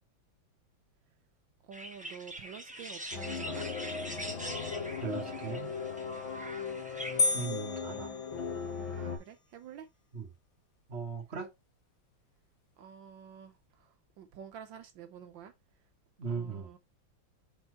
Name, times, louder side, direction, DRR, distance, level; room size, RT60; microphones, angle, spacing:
voice 1, 1.6-3.7 8.9-9.9 12.8-15.5 16.3-16.8, right 8 dB, 75° right, 1.4 m, -49 dB
sound 1, 1.7-7.4, right 1 dB, 10° right, 0.5 m, -44 dB
sound 2, 3.1-9.2, left 5 dB, 85° left, 2.9 m, -38 dB
voice 2, 5.0-5.7 7.3-8.1 10.1-10.3 10.9-11.5 16.2-16.7, right 5 dB, 35° right, 1.5 m, -38 dB
sound 3, 7.2-9.0, left 3 dB, 60° left, 1.0 m, -32 dB
5.3 x 4.4 x 4.5 m
omnidirectional pair, 2.1 m